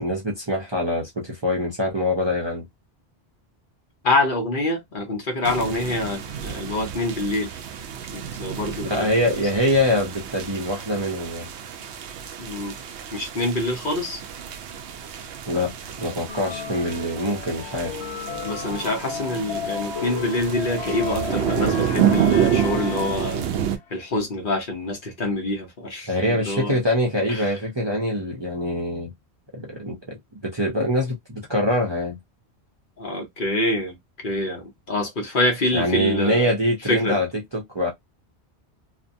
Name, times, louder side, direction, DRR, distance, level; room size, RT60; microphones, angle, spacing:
voice 1, 0.0-2.6 8.8-11.5 15.5-15.7 16.0-18.0 26.1-29.1 29.5-32.2 35.7-37.9, left 1 dB, 30° right, 0.6 m, -24 dB
voice 2, 4.0-7.5 8.1-9.1 12.4-12.8 13.1-14.2 18.4-23.4 23.9-26.8 27.3-27.5 33.0-34.0 34.2-36.5 36.9-37.2, left 2 dB, 55° left, 1.0 m, -26 dB
sound 1, 5.4-23.8, right 9 dB, 80° right, 0.8 m, -29 dB
sound 2, 16.3-23.6, left 5 dB, 80° left, 1.2 m, -33 dB
2.7 x 2.2 x 2.6 m
omnidirectional pair, 1.1 m